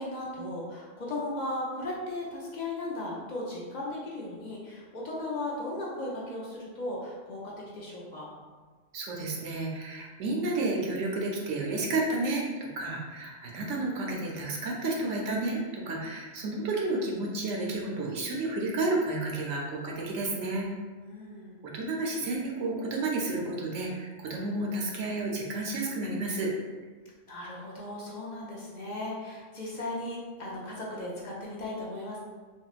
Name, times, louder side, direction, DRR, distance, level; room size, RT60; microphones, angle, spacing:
voice 1, 0.0-8.3 21.0-21.6 27.2-32.2, left 1 dB, 55° left, -5 dB, 0.5 m, -36 dB
voice 2, 8.9-20.7 21.6-26.5, right 2 dB, 75° right, -2 dB, 0.9 m, -31 dB
3.5 x 2.1 x 2.3 m, 1.4 s
omnidirectional pair, 1.3 m